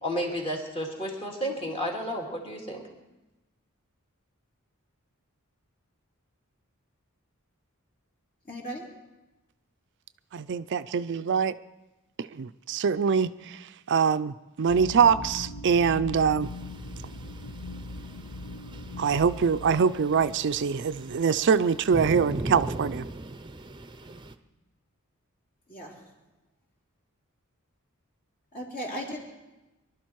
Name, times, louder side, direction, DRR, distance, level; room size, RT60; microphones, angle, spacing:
voice 1, 0.0-2.8, equal, 25° left, 0 dB, 2.7 m, -32 dB
voice 2, 8.5-8.9 25.7-26.0 28.5-29.2, equal, 40° left, -2 dB, 3.6 m, -36 dB
voice 3, 10.3-11.6 12.2-13.3 13.9-16.5 19.0-23.0, right 6 dB, 55° right, 13 dB, 0.4 m, -24 dB
sound 1, 14.7-21.4, left 2 dB, 60° left, 0.7 m, -41 dB
sound 2, 16.4-24.3, right 2 dB, 20° right, 0.7 m, -40 dB
23.0 x 12.0 x 4.6 m, 1.0 s
head